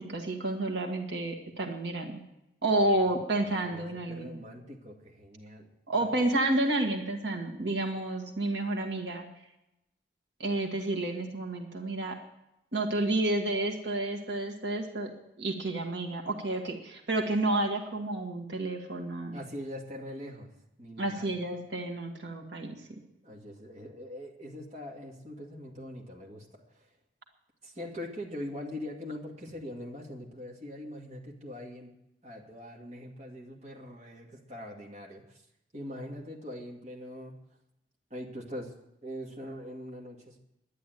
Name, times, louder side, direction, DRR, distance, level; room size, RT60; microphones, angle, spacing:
voice 1, 0.0-2.2 2.6-4.3 5.9-9.2 10.4-12.2 12.7-15.1 15.4-19.4 21.0-23.0, right 2 dB, 75° right, 1 dB, 1.8 m, -30 dB
voice 2, 3.5-6.2 19.3-20.5 20.8-21.3 23.2-26.6 27.6-31.9 32.2-35.2 35.7-37.3 38.1-38.7 39.0-40.4, left 1 dB, 40° right, -2 dB, 2.1 m, -42 dB
11.0 x 10.5 x 9.2 m, 0.88 s
head